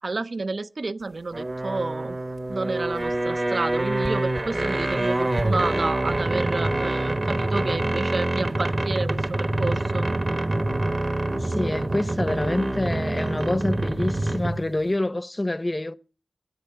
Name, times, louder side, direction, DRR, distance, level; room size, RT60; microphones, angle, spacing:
voice 1, 0.0-2.2 2.5-10.1, right 3 dB, 55° right, 0.5 m, -30 dB
sound 1, 1.3-14.7, right 1 dB, 35° right, 1.1 m, -26 dB
voice 2, 11.3-15.9, left 1 dB, 25° left, 0.6 m, -27 dB
24.5 x 8.6 x 3.6 m
wide cardioid pair, 95°, 0 cm